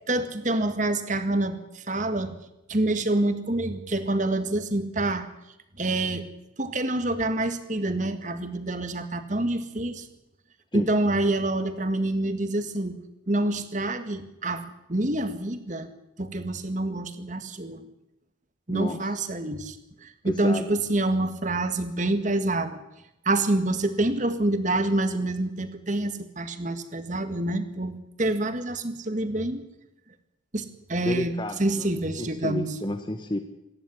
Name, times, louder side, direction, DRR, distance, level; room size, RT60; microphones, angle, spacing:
voice 1, 0.1-2.4 2.7-5.3 5.8-6.3 6.6-10.1 10.7-13.0 13.3-15.9 16.2-17.9 18.7-19.8 20.0-22.8 23.2-29.6 30.5-30.6 30.9-31.3 31.6-32.7, right 2 dB, 40° right, 9 dB, 1.8 m, -27 dB
voice 2, 18.7-19.1 20.2-20.8 31.0-33.4, left 1 dB, 25° left, 7 dB, 1.3 m, -31 dB
26.0 x 11.0 x 9.9 m, 0.90 s
head